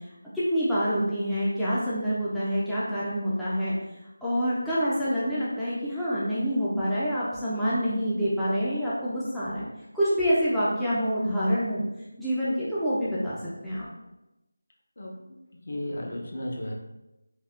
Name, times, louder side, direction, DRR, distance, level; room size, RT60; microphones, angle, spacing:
voice 1, 0.3-3.7 4.2-9.7 9.9-11.8 12.2-13.4 13.6-13.8, equal, ahead, -13 dB, 0.3 m, -26 dB
voice 2, 15.0-16.7, left 1 dB, 50° left, 0 dB, 0.6 m, -35 dB
3.4 x 2.4 x 2.4 m, 0.96 s
figure-of-eight pair, 170°, 0 cm